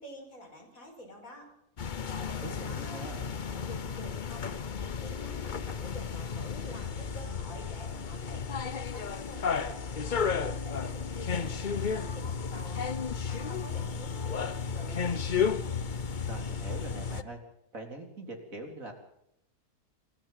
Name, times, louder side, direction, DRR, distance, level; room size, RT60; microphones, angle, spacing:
voice 1, 0.0-1.5 2.1-15.2, left 1 dB, 60° left, 3 dB, 5.7 m, -48 dB
sound 1, 1.8-17.2, left 6 dB, 40° left, 0.8 m, -33 dB
voice 2, 2.4-3.3 16.3-17.4 17.7-18.9, right 2 dB, 60° right, 3 dB, 4.5 m, -42 dB
27.0 x 13.5 x 7.4 m, 0.78 s
omnidirectional pair, 1.6 m